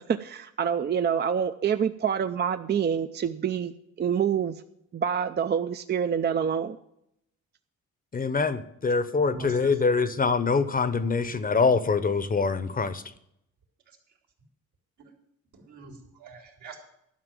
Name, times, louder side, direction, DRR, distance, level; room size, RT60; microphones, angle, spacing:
voice 1, 0.0-4.6 4.9-6.8, right 7 dB, 35° right, 9 dB, 0.5 m, -27 dB
voice 2, 8.1-13.0, left 4 dB, 30° left, 14 dB, 0.8 m, -24 dB
voice 3, 9.2-10.0 15.6-16.8, right 3 dB, 80° right, 0 dB, 3.3 m, -43 dB
11.5 x 5.9 x 9.0 m, 0.76 s
cardioid pair, 90°, 30 cm